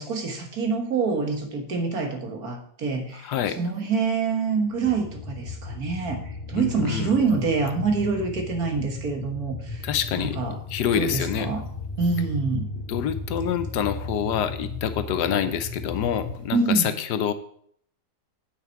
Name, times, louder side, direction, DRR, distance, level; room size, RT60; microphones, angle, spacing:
voice 1, 0.0-9.9 10.2-10.6 10.9-11.6 12.0-12.7 16.5-16.9, right 4 dB, 60° right, 4 dB, 1.9 m, -26 dB
voice 2, 3.2-3.6 6.6-7.1 9.8-10.4 10.7-11.5 12.9-17.3, left 9 dB, 75° left, 11 dB, 1.3 m, -26 dB
sound 1, 4.7-16.4, left 3 dB, 35° left, 2.3 m, -35 dB
9.3 x 8.3 x 4.5 m, 0.64 s
omnidirectional pair, 1.8 m